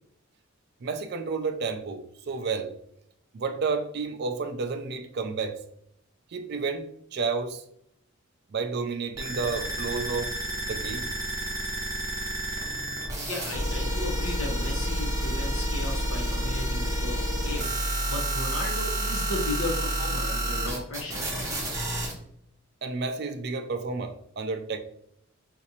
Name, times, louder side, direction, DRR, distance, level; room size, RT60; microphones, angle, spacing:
voice 1, 0.8-2.7 3.3-5.6 6.3-7.6 8.5-10.3 10.7-11.1 22.8-24.8, right 4 dB, 50° right, 0.4 m, -31 dB
sound 1, 9.2-22.1, right 1 dB, 15° right, 0.7 m, -29 dB
voice 2, 13.2-17.7 18.1-21.3, left 2 dB, 75° left, 0.9 m, -35 dB
4.1 x 2.5 x 2.8 m
head